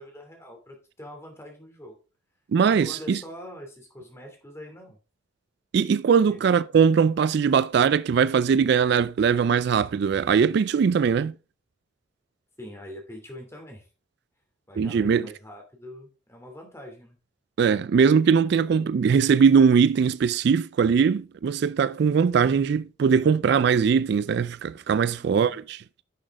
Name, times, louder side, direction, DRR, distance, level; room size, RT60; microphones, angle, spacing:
voice 1, 0.0-2.0 2.7-5.0 6.3-6.4 12.6-13.9 14.7-17.2 25.1-25.6, left 1 dB, 15° left, 2.7 m, -44 dB
voice 2, 2.5-3.2 5.7-11.3 14.8-15.3 17.6-25.8, right 6 dB, 60° right, 0.3 m, -21 dB
11.0 x 6.3 x 3.7 m
head